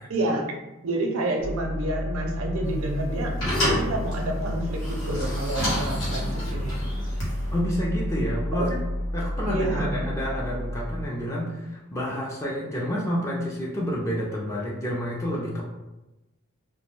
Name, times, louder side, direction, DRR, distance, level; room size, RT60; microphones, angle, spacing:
voice 1, 0.1-0.4 0.8-6.8 8.5-8.7 9.5-10.0 10.2-10.4, right 1 dB, 90° right, 2 dB, 0.5 m, -29 dB
sound 1, 1.4-11.1, equal, 60° left, 0.5 m, -31 dB
sound 2, 2.7-7.6, left 1 dB, 80° left, 1.0 m, -30 dB
voice 2, 7.5-8.8 9.1-15.6, equal, 15° left, -4 dB, 0.3 m, -29 dB
2.2 x 2.1 x 3.1 m, 1.0 s
head